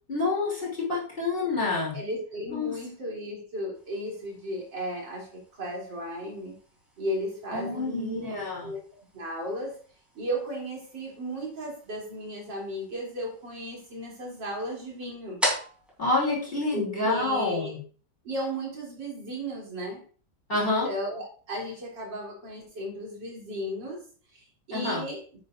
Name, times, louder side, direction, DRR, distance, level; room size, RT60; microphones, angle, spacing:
voice 1, 0.1-2.0 2.5-2.7 7.5-8.7 16.0-17.8 20.5-20.9 24.7-25.0, left 3 dB, 30° left, -4 dB, 3.3 m, -28 dB
voice 2, 1.9-6.6 7.0-8.3 8.6-8.8 9.1-9.8 10.2-15.4 16.7-17.7 18.2-20.0 20.5-24.0 24.3-25.2, equal, 80° right, -3 dB, 4.0 m, -35 dB
sound 1, 3.7-17.3, equal, ahead, 3.5 m, -41 dB
10.0 x 8.6 x 2.6 m, 0.40 s
omnidirectional pair, 1.9 m